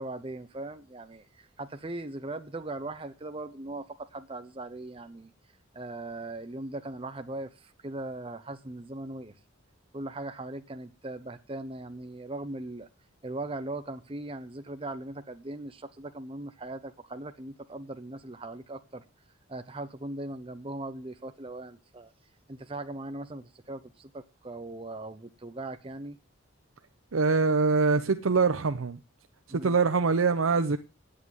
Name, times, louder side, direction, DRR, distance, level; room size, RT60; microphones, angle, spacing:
voice 1, 0.0-5.3 5.7-9.3 9.9-12.9 13.2-19.0 19.5-22.1 22.5-26.2 29.5-29.8, right 2 dB, 25° right, 0.8 m, -39 dB
voice 2, 27.1-29.0 29.5-30.8, right 4 dB, 90° right, 0.7 m, -24 dB
9.5 x 8.5 x 7.2 m
head